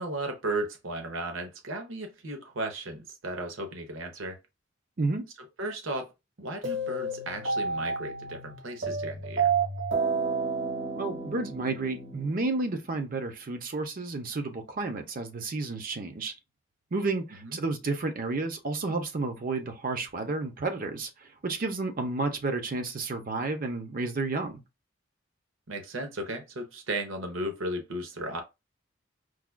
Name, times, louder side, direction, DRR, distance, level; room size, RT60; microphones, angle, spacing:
voice 1, 0.0-4.4 5.4-6.1 6.4-9.5 17.4-17.6 25.7-28.4, right 1 dB, 90° right, 0.8 m, -35 dB
sound 1, 6.6-12.8, right 4 dB, 65° right, 1.4 m, -30 dB
voice 2, 11.0-16.3 16.9-21.1 21.4-24.6, right 3 dB, 45° right, 0.6 m, -31 dB
4.7 x 2.3 x 2.2 m
head